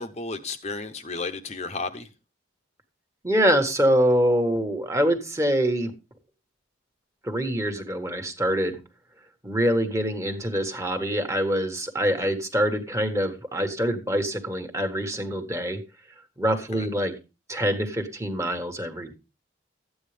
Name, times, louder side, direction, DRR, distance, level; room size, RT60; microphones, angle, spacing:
voice 1, 0.0-2.1 12.2-12.3 16.7-16.9, left 3 dB, 35° left, 7 dB, 0.8 m, -33 dB
voice 2, 3.2-5.9 7.2-8.8 9.4-15.8 16.4-17.1 17.5-19.1, equal, 15° right, 6 dB, 1.5 m, -25 dB
13.5 x 9.5 x 3.3 m, 0.30 s
head